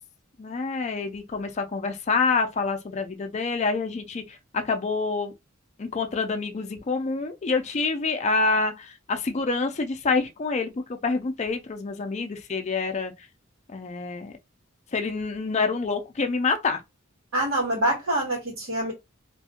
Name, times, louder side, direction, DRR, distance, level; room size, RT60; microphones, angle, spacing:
voice 1, 0.4-5.3 5.8-10.7 11.0-13.1 13.7-14.3 14.9-16.8, left 4 dB, 35° left, 0.4 m, -27 dB
voice 2, 17.3-18.9, right 1 dB, 90° right, 1.2 m, -25 dB
2.5 x 2.3 x 2.8 m
head